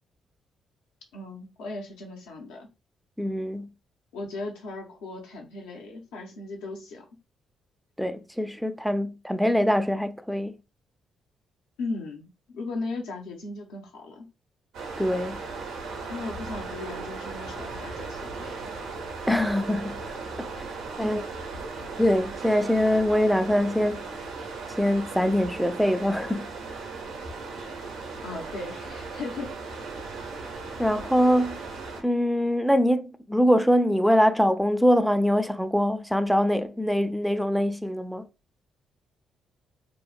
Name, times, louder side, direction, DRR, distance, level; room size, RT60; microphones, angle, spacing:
voice 1, 1.1-2.7 4.1-7.0 11.8-12.3 12.5-14.3 16.1-18.7 21.0-21.1 28.2-29.5, left 3 dB, 90° left, 0.6 m, -37 dB
voice 2, 3.2-3.7 8.0-10.5 15.0-15.4 19.3-20.0 20.4-20.7 21.0-21.2 22.0-24.0 24.8-26.5 30.8-31.6 32.0-38.2, equal, ahead, 0.3 m, -23 dB
sound 1, 14.7-32.0, right 4 dB, 90° right, 0.8 m, -37 dB
2.9 x 2.0 x 2.4 m
supercardioid pair, 65°, 0 cm